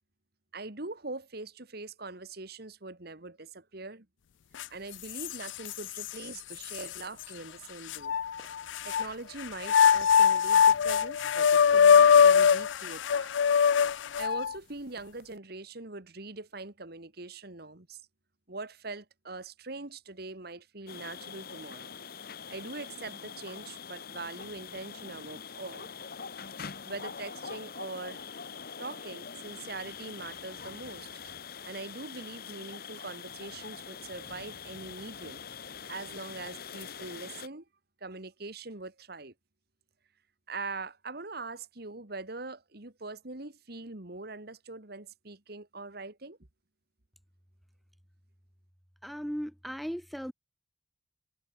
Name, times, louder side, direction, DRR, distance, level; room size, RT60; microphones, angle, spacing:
voice 1, 0.5-4.1 4.7-8.2 8.8-13.3 14.2-18.0 18.5-21.9 22.5-25.9 26.9-28.2 28.8-31.1 31.6-35.4 35.9-37.6 38.0-39.3 40.5-46.4, right 3 dB, 60° right, 2.2 m, -42 dB
sound 1, 4.6-4.7 5.2-6.1 6.7-6.8 7.9-9.1 9.6-14.5, left 7 dB, 85° left, 0.4 m, -22 dB
sound 2, 8.2-15.0, right 2 dB, 35° right, 6.6 m, -65 dB
sound 3, 20.9-37.5, left 6 dB, 55° left, 1.1 m, -44 dB
voice 2, 49.0-50.3, equal, ahead, 0.6 m, -37 dB
head